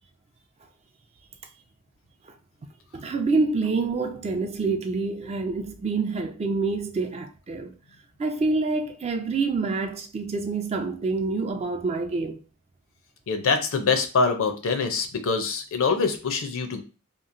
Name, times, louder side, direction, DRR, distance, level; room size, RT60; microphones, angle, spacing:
voice 1, 2.9-7.7 8.2-12.4, right 3 dB, 30° right, 0.3 m, -27 dB
voice 2, 13.3-16.8, left 4 dB, 65° left, 0.5 m, -24 dB
2.9 x 2.4 x 2.5 m
head